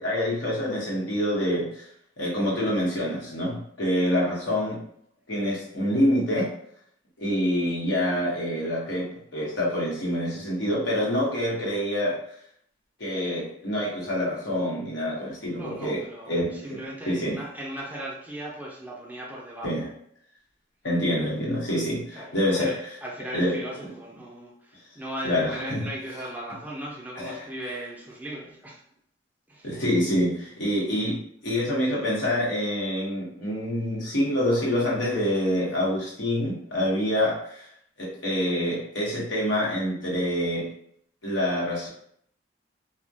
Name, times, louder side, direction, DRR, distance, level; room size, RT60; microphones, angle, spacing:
voice 1, 0.0-1.8 2.2-4.8 5.3-6.5 7.2-12.2 13.0-16.8 17.1-17.4 19.6-19.9 20.8-22.7 23.3-23.6 25.2-25.9 27.1-27.4 29.6-37.7 38.0-40.7 41.2-41.9, equal, 85° left, -4 dB, 0.9 m, -26 dB
voice 2, 15.5-19.7 22.1-28.8 29.5-29.8, right 1 dB, 10° right, -4 dB, 0.4 m, -38 dB
2.2 x 2.1 x 2.6 m, 0.67 s
head